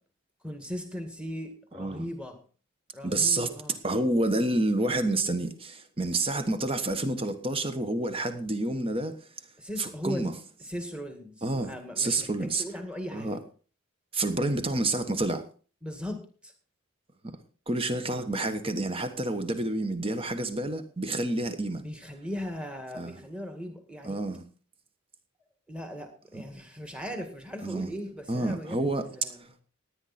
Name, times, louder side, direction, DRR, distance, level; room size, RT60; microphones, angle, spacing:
voice 1, 0.4-2.4 2.9-3.8 9.6-10.3 10.6-13.4 15.8-16.5 21.7-24.2 25.7-29.5, equal, 5° right, 2.0 m, -38 dB
voice 2, 1.7-2.1 3.0-3.5 3.8-9.3 9.8-10.3 11.4-12.6 13.1-13.4 14.1-15.5 17.2-17.4 17.7-21.8 22.9-23.2 24.0-24.4 26.3-26.4 27.6-27.9 28.3-29.6, right 2 dB, 25° right, 1.3 m, -29 dB
17.0 x 9.9 x 4.3 m
head